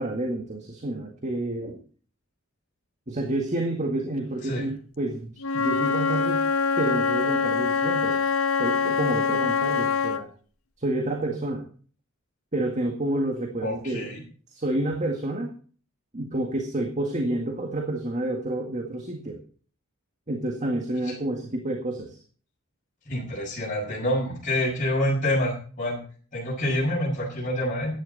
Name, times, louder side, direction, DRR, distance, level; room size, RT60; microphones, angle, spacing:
voice 1, 0.0-1.8 3.1-6.4 6.8-8.2 8.6-10.3 10.8-11.6 12.5-14.1 14.5-15.5 16.1-19.4 20.3-22.2, right 1 dB, 35° right, 3 dB, 1.9 m, -29 dB
Wind instrument woodwind instrument, 5.4-10.2, left 5 dB, 75° left, 1.1 m, -24 dB
voice 2, 13.6-14.2 21.0-21.1 23.1-26.0 26.3-27.9, left 1 dB, 40° left, -4 dB, 6.4 m, -27 dB
15.0 x 11.0 x 4.1 m, 0.42 s
head